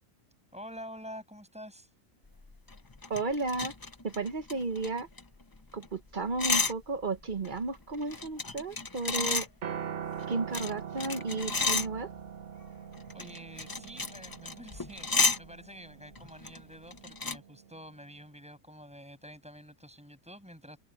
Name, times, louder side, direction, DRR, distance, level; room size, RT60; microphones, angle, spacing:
voice 1, 0.5-1.9 13.1-20.8, equal, 5° right, 6.9 m, -48 dB
sound 1, 2.4-5.6 5.8-5.9 6.1-6.7 7.2-9.5 10.2-12.2 12.9-15.4 16.1-16.6 16.9-17.4, left 3 dB, 20° left, 0.6 m, -32 dB
voice 2, 3.1-3.7 4.0-5.1 5.7-9.5 10.3-12.1, right 3 dB, 40° right, 1.0 m, -33 dB
Piano, 9.6-17.9, right 8 dB, 65° right, 1.3 m, -43 dB
omnidirectional pair, 1.3 m